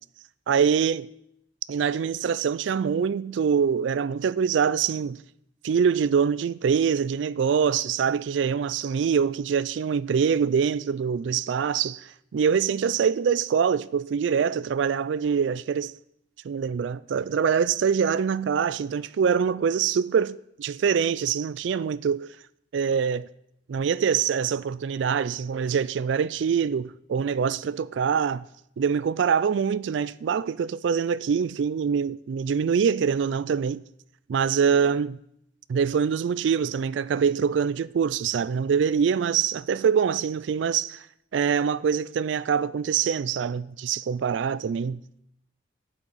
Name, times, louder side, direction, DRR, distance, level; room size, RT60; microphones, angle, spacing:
voice 1, 0.5-1.1 1.7-5.2 5.6-15.9 16.4-22.4 22.7-23.3 23.7-28.5 28.8-33.8 34.3-35.2 35.7-41.1 41.3-45.0, right 7 dB, 65° right, 0.3 m, -24 dB
11.0 x 6.2 x 9.2 m
head